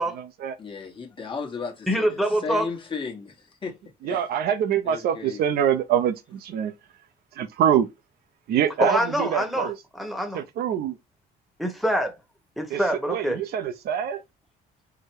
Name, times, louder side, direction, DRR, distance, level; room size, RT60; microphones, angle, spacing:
voice 1, 0.0-0.6 4.0-6.7 7.3-7.9 8.5-9.8 10.3-11.0 12.7-14.2, right 9 dB, 70° right, 0.6 m, -25 dB
voice 2, 0.6-4.2 4.8-5.6, left 5 dB, 30° left, 1.2 m, -35 dB
voice 3, 1.9-2.7 8.8-10.4 11.6-12.1 12.6-13.4, equal, ahead, 1.2 m, -25 dB
4.8 x 2.2 x 4.6 m
cardioid pair, 110°, 17 cm